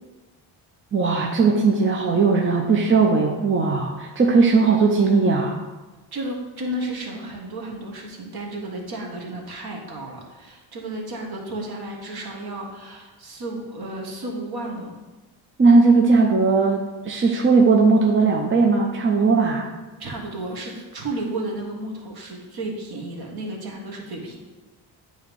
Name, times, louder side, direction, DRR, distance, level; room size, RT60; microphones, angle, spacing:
voice 1, 0.9-5.6 15.6-19.7, right 4 dB, 25° right, 1 dB, 0.8 m, -18 dB
voice 2, 6.1-15.0 20.0-24.4, right 1 dB, 55° right, 0 dB, 1.8 m, -33 dB
8.7 x 3.2 x 5.4 m, 1.2 s
cardioid pair, 90°, 45 cm